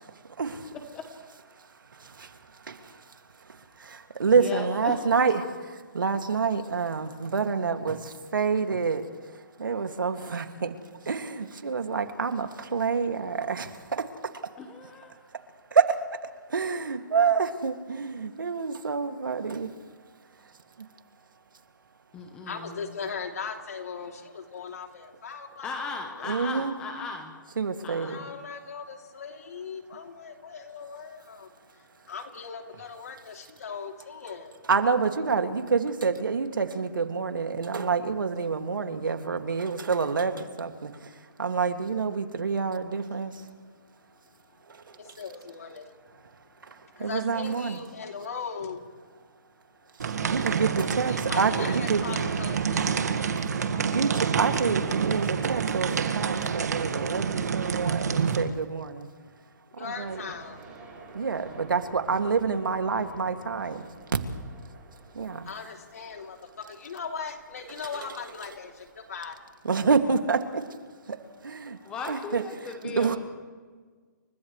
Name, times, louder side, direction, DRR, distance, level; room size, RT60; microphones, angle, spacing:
voice 1, 0.4-0.7 2.2-2.3 2.7-2.8 3.8-5.4 5.9-9.0 9.6-10.8 11.1-14.1 15.7-16.0 16.5-19.7 26.2-26.8 27.6-28.2 34.7-40.9 41.4-43.3 47.0-47.8 50.3-52.0 53.8-59.1 59.8-60.2 61.1-63.8 65.2-65.4 67.9-68.1 69.6-70.6 71.1-71.2 71.4-71.8 72.0-72.4 72.8-73.2, right 5 dB, 85° right, 6 dB, 2.3 m, -27 dB
voice 2, 4.4-5.4 14.6-15.2 22.1-22.8 25.6-27.4 27.8-28.3 71.9-73.2, left 4 dB, 10° left, 4 dB, 1.0 m, -37 dB
voice 3, 22.2-26.6 28.0-34.6 44.9-46.1 46.8-48.8 51.0-53.0 59.8-60.6 65.4-69.4, left 5 dB, 50° left, 3 dB, 3.0 m, -39 dB
sound 1, 50.0-58.4, right 6 dB, 55° right, 1.8 m, -28 dB
sound 2, 59.9-69.5, right 3 dB, 15° right, 6.2 m, -50 dB
30.0 x 27.0 x 3.3 m, 1.5 s
hypercardioid pair, 175°, 11 cm